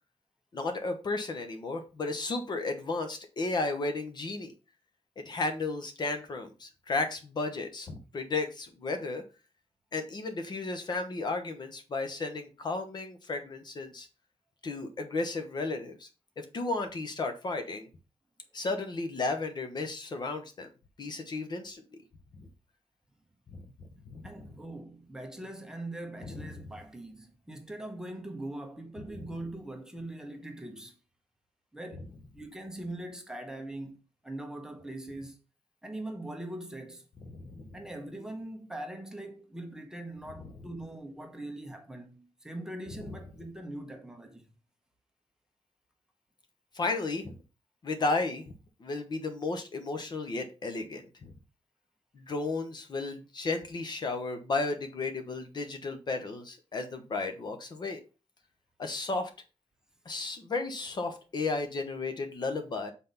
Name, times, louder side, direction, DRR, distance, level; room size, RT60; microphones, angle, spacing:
voice 1, 0.5-4.5 5.2-9.2 9.9-14.1 14.6-16.1 16.4-17.9 18.5-20.7 21.0-21.8 22.4-22.5 23.5-23.7 24.1-24.3 26.3-26.6 37.2-37.8 40.4-40.5 46.7-47.4 47.8-48.4 48.8-51.3 52.1-58.0 58.8-59.3 60.0-62.9, left 3 dB, 40° left, 1.0 m, -34 dB
voice 2, 24.2-31.0 31.7-35.4 35.8-37.1 37.7-44.5, right 1 dB, 5° right, 1.0 m, -42 dB
5.8 x 4.1 x 5.5 m
wide cardioid pair, 160°, 11 cm